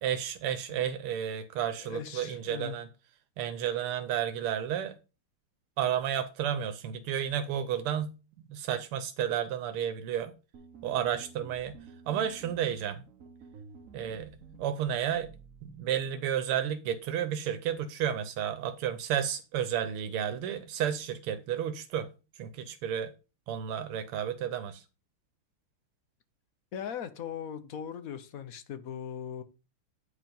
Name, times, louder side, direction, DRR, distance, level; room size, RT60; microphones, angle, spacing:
voice 1, 0.0-2.9 3.4-5.0 5.8-10.3 10.8-11.8 12.1-13.0 13.9-15.3 15.6-22.1 22.4-23.1 23.5-24.8, right 9 dB, 90° right, 1.7 m, -32 dB
voice 2, 1.8-2.7 26.7-29.4, left 8 dB, 55° left, 1.0 m, -39 dB
sound 1, 10.5-15.9, right 5 dB, 45° right, 1.3 m, -51 dB
9.0 x 5.1 x 5.3 m
omnidirectional pair, 2.4 m